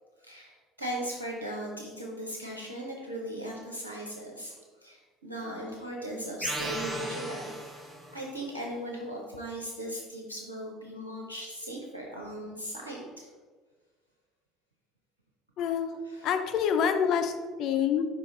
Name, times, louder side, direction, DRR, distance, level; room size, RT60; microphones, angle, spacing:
voice 1, 0.2-4.6 4.8-7.5 8.1-13.3 16.1-16.3, right 1 dB, 85° right, -1 dB, 0.7 m, -38 dB
sound 1, 6.4-8.3, right 1 dB, 10° right, 1.2 m, -36 dB
voice 2, 15.6-18.0, left 7 dB, 55° left, 7 dB, 0.5 m, -27 dB
5.0 x 4.9 x 3.8 m, 1.4 s
figure-of-eight pair, 60°, 0 cm